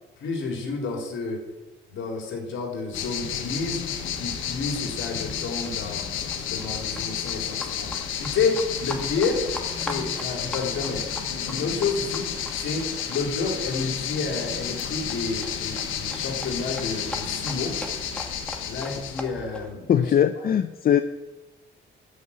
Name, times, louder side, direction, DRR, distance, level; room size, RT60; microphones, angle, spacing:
voice 1, 0.2-1.4 1.9-3.8 4.2-6.1 6.5-9.4 9.8-17.8 18.6-20.0, left 4 dB, 70° left, 1 dB, 3.6 m, -30 dB
sound 1, 2.9-19.2, left 8 dB, 90° left, 1.3 m, -31 dB
Livestock farm animals working animals, 3.6-19.7, left 1 dB, 5° left, 1.8 m, -42 dB
voice 2, 19.9-21.0, left 9 dB, 50° left, 10 dB, 0.6 m, -20 dB
13.0 x 5.5 x 8.6 m, 1.1 s
cardioid pair, 90°, 20 cm